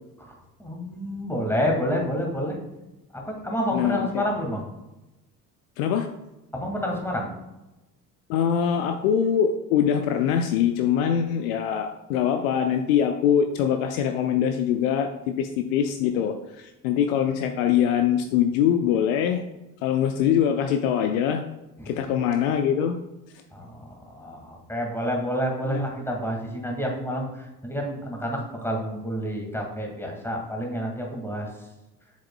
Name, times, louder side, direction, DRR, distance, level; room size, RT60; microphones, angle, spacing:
voice 1, 0.6-2.6 3.1-4.7 6.5-7.3 21.8-22.0 23.5-31.5, equal, 5° left, 1 dB, 2.0 m, -29 dB
voice 2, 3.7-4.2 5.8-6.1 8.3-15.1 15.4-19.4 19.8-21.4 21.9-23.0 25.6-25.8, left 9 dB, 60° left, 7 dB, 0.6 m, -23 dB
7.4 x 7.3 x 2.2 m, 0.99 s
figure-of-eight pair, 55°, 46 cm